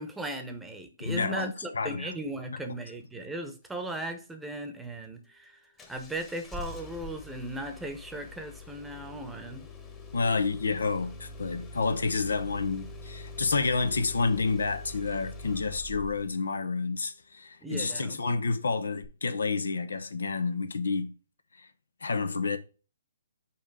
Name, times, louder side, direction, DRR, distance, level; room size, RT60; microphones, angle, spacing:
voice 1, 0.0-5.6 5.9-9.7 17.6-18.2, right 1 dB, 5° right, 1.0 m, -37 dB
voice 2, 1.0-2.1 2.5-2.6 10.1-21.1 21.5-21.7 22.0-22.6, left 4 dB, 80° left, 0.9 m, -29 dB
Engine starting, 5.8-16.4 19.0-19.1, left 2 dB, 15° left, 1.2 m, -44 dB
5.7 x 4.3 x 4.8 m
hypercardioid pair, 140°, 0 cm